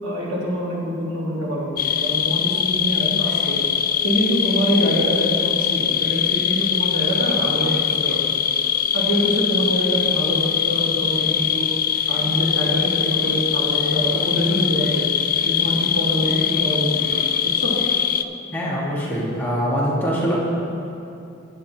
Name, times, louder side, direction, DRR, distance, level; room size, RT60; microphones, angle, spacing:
voice 1, 0.0-3.6 4.0-8.2 8.9-11.7 12.1-15.1 15.4-17.7, equal, 75° right, -6 dB, 2.6 m, -24 dB
sound 1, 1.8-18.2, left 9 dB, 45° left, 0.3 m, -22 dB
voice 2, 18.5-20.3, equal, 10° left, -7 dB, 1.8 m, -23 dB
15.5 x 9.9 x 3.0 m, 2.7 s
head